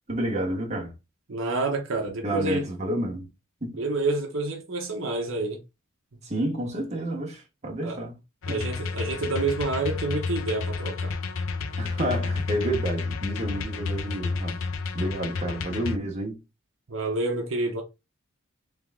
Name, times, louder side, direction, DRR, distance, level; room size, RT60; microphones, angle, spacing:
voice 1, 0.1-0.9 2.2-3.3 3.6-3.8 6.2-8.1 8.5-8.6 11.8-14.6 14.9-16.4, right 1 dB, 35° right, 1.2 m, -30 dB
voice 2, 1.3-2.7 3.8-5.6 7.8-8.0 8.5-11.2 16.9-17.8, right 2 dB, 70° right, 0.9 m, -28 dB
sound 1, 8.4-16.0, left 4 dB, 75° left, 0.6 m, -31 dB
3.4 x 3.4 x 3.6 m
head